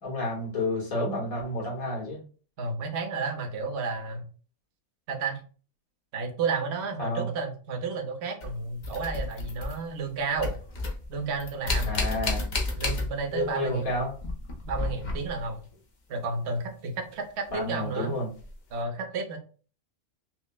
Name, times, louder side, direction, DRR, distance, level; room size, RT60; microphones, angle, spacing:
voice 1, 0.0-2.2 7.0-7.3 11.9-12.4 13.3-14.1 17.5-18.3, left 2 dB, 70° left, -4 dB, 1.7 m, -30 dB
voice 2, 2.6-4.3 5.1-5.4 6.1-10.6 11.1-12.0 12.8-13.9 14.7-15.6 16.1-18.1 18.7-19.4, right 4 dB, 55° right, 4 dB, 0.9 m, -32 dB
sound 1, 8.4-10.1 10.3-13.5 13.8-15.6 17.5-17.6 18.4-18.5, left 3 dB, 40° left, 0.7 m, -32 dB
5.9 x 2.1 x 2.2 m, 0.39 s
omnidirectional pair, 1.6 m